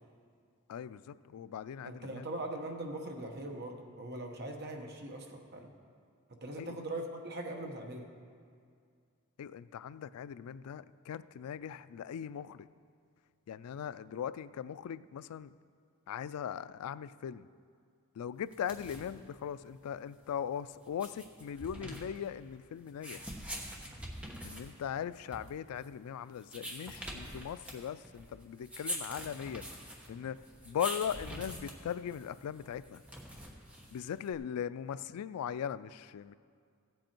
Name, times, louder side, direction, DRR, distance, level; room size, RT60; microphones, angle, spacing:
voice 1, 0.7-2.2 6.6-6.8 9.4-12.7 13.5-15.5 16.1-17.5 18.2-23.3 24.4-29.7 30.1-30.4 30.7-33.0 33.9-36.3, left 8 dB, 90° left, 17 dB, 0.3 m, -39 dB
voice 2, 1.8-5.7 6.4-8.1, right 1 dB, 50° right, 2 dB, 1.1 m, -41 dB
sound 1, 18.5-34.3, equal, 5° right, 1.0 m, -45 dB
15.5 x 7.7 x 4.4 m, 2.2 s
head